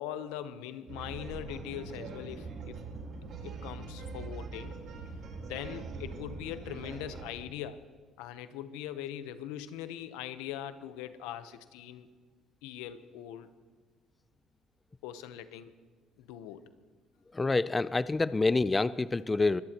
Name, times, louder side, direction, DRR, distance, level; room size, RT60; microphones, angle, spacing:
voice 1, 0.0-2.8 3.4-4.7 5.5-7.8 8.2-12.1 12.6-13.5 15.0-15.7 16.2-16.6, left 11 dB, 85° left, 12 dB, 0.9 m, -41 dB
sound 1, 0.9-7.4, right 4 dB, 60° right, 3.0 m, -42 dB
voice 2, 17.3-19.6, left 3 dB, 20° left, 17 dB, 0.4 m, -27 dB
24.0 x 18.0 x 3.0 m, 1.5 s
supercardioid pair, 80°, 0 cm